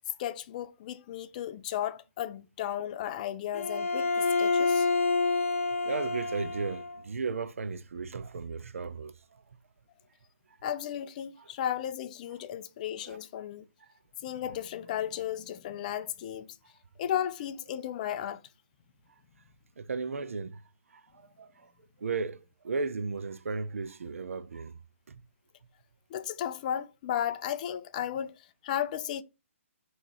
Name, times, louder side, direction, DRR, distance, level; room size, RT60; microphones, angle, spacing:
voice 1, 0.2-4.9 10.6-13.7 14.2-16.6 17.0-18.4 26.1-29.2, left 10 dB, 35° left, 0.4 m, -34 dB
Bowed string instrument, 3.5-7.0, left 3 dB, 70° left, 0.7 m, -28 dB
voice 2, 5.8-9.4 11.4-11.5 13.0-13.2 13.8-13.9 19.8-20.6 20.9-21.7 22.0-24.8 25.1-25.2, right 4 dB, 75° right, 0.5 m, -35 dB
3.6 x 3.0 x 4.6 m
hypercardioid pair, 145°, 7 cm